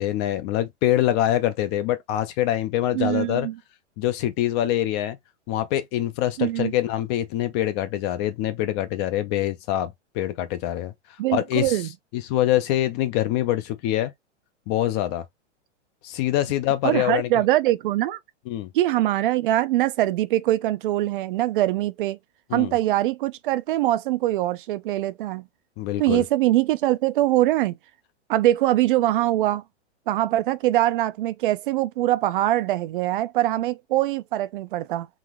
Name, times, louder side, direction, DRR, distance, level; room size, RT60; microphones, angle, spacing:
voice 1, 0.0-3.5 4.0-5.2 5.5-10.9 11.3-11.8 12.1-14.1 14.7-15.2 16.0-17.3 18.5-18.7 22.5-22.8 25.8-26.2, left 13 dB, 25° left, 0.4 m, -24 dB
voice 2, 2.9-3.6 6.4-6.7 11.2-11.9 16.8-18.2 18.7-22.2 22.5-25.4 26.0-27.8 28.3-29.6 30.1-35.1, right 14 dB, 45° right, 0.4 m, -23 dB
3.9 x 2.8 x 2.9 m
hypercardioid pair, 135°, 36 cm